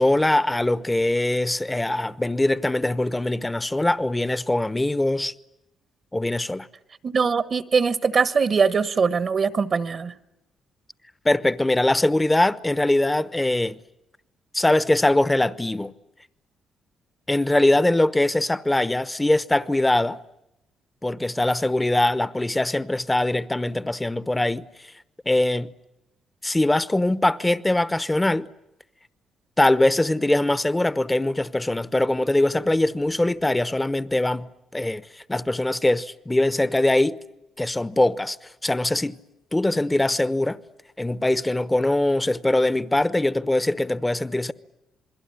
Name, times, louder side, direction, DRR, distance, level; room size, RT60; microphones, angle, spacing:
voice 1, 0.0-5.3 6.1-6.7 11.2-13.8 14.5-15.9 17.3-20.2 21.0-24.9 25.2-25.7 26.4-28.5 29.6-37.2 37.6-38.4 38.6-39.2 39.5-40.6 41.0-44.5, left 1 dB, 10° left, 1.0 m, -22 dB
voice 2, 7.0-10.2, right 5 dB, 45° right, 1.2 m, -22 dB
28.0 x 21.5 x 9.9 m
cardioid pair, 90°, 0 cm